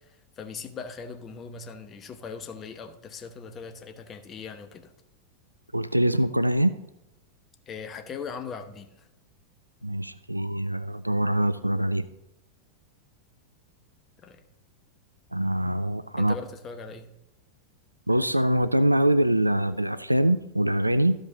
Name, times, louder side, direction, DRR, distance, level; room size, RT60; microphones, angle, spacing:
voice 1, 0.0-4.9 7.7-9.1 14.2-14.4 16.2-17.1, left 5 dB, 25° left, 0.9 m, -40 dB
voice 2, 5.7-6.7 9.8-12.1 15.3-16.4 18.1-21.2, right 1 dB, 85° right, 0.3 m, -24 dB
13.5 x 5.1 x 3.9 m
figure-of-eight pair, 90°, 0 cm